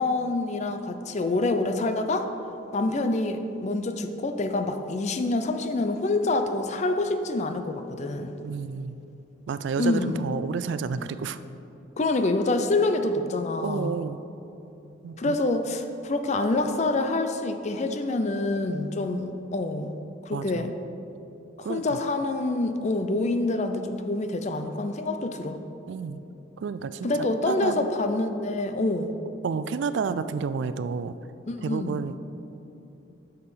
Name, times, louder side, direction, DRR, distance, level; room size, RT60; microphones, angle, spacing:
voice 1, 0.0-2.3 2.7-8.3 9.8-10.3 12.0-13.9 15.2-19.9 20.3-20.7 21.7-25.6 27.0-29.1 31.5-32.0, left 2 dB, 35° left, 7 dB, 0.5 m, -26 dB
voice 2, 8.4-9.0 9.5-11.4 13.6-14.2 15.0-15.4 20.3-20.7 21.6-22.0 25.9-26.2 26.6-27.1 27.5-27.9 29.4-31.2 31.6-32.2, right 5 dB, 70° right, 13 dB, 0.3 m, -30 dB
6.8 x 6.5 x 5.5 m, 2.9 s
head